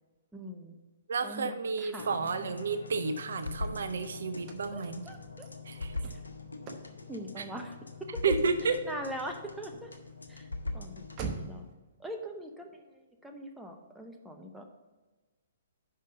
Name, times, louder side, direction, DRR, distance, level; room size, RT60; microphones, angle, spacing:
voice 1, 0.3-0.8 1.2-2.5 4.7-5.5 7.1-8.3 8.6-9.9 10.3-10.5 10.7-11.7 12.0-14.6, equal, 5° right, 2 dB, 0.8 m, -42 dB
voice 2, 1.1-5.0 5.7-5.9 7.4-7.5 8.2-8.8, right 4 dB, 65° right, 9 dB, 0.6 m, -31 dB
sound 1, 2.0-11.4, left 3 dB, 80° left, 0.8 m, -42 dB
Car / Slam, 3.4-11.7, right 5 dB, 30° right, 0.9 m, -47 dB
5.5 x 5.3 x 6.6 m, 1.2 s
figure-of-eight pair, 125°, 0 cm